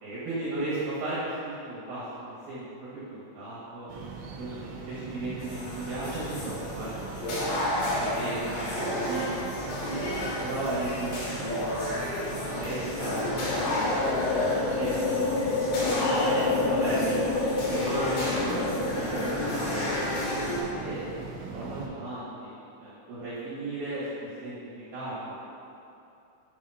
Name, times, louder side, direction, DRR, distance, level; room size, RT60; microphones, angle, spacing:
voice 1, 0.0-3.9 4.4-6.9 7.5-9.2 10.4-11.9 12.2-13.3 13.6-15.4 15.8-19.9 20.5-25.4, right 2 dB, 70° right, -11 dB, 2.3 m, -36 dB
sound 1, 3.9-21.9, right 5 dB, 85° right, 2.7 m, -41 dB
sound 2, 5.4-20.6, left 1 dB, 65° left, 2.7 m, -31 dB
sound 3, 12.6-20.3, left 3 dB, 85° left, 2.6 m, -29 dB
8.3 x 2.8 x 5.4 m, 2.8 s
omnidirectional pair, 5.7 m